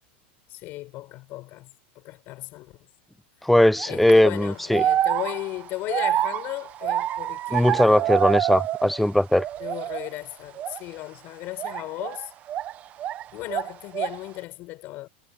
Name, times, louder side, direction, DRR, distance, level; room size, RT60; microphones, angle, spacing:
voice 1, 0.5-2.9 3.9-8.0 9.6-12.3 13.3-15.1, left 18 dB, 35° left, 5.8 m, -36 dB
voice 2, 3.4-4.8 7.5-9.4, left 1 dB, ahead, 0.4 m, -19 dB
sound 1, 3.8-4.1 4.7-9.1 9.4-10.1 10.6-10.8 11.6-13.2 13.5-14.3, right 12 dB, 25° right, 0.9 m, -27 dB
supercardioid pair, 170°, 6 cm